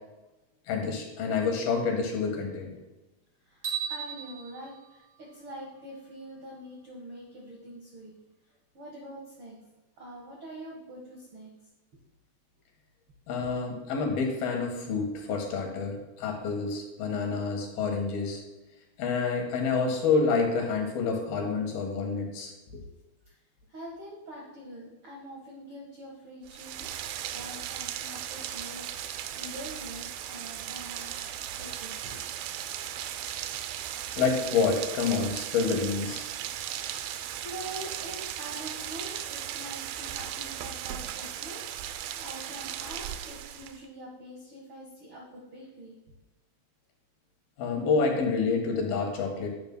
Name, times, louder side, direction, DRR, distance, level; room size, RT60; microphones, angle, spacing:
voice 1, 0.7-2.7 13.3-18.4 19.0-22.5 33.3-33.4 34.2-36.2 47.6-49.5, left 4 dB, 75° left, 2 dB, 3.2 m, -28 dB
voice 2, 3.4-8.1 8.7-9.6 10.0-11.5 23.2-23.3 23.7-26.9 27.3-31.2 31.6-32.3 37.4-46.0, right 1 dB, 55° right, -3 dB, 1.6 m, -44 dB
sound 1, 3.6-5.9, right 9 dB, 35° right, 2.7 m, -37 dB
Rain, 26.5-43.9, right 11 dB, 80° right, 2.3 m, -37 dB
11.0 x 9.8 x 2.2 m, 1.0 s
omnidirectional pair, 4.4 m